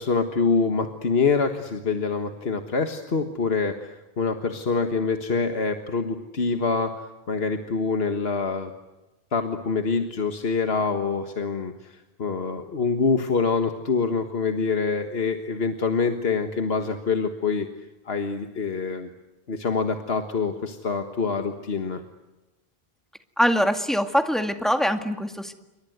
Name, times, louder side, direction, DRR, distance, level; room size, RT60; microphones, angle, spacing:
voice 1, 0.0-8.7 9.3-11.9 12.2-17.7 18.0-19.1 19.5-22.0, left 4 dB, 70° left, 6 dB, 1.8 m, -25 dB
voice 2, 23.4-25.5, equal, ahead, 6 dB, 2.0 m, -23 dB
28.5 x 24.0 x 8.0 m, 1.0 s
omnidirectional pair, 1.1 m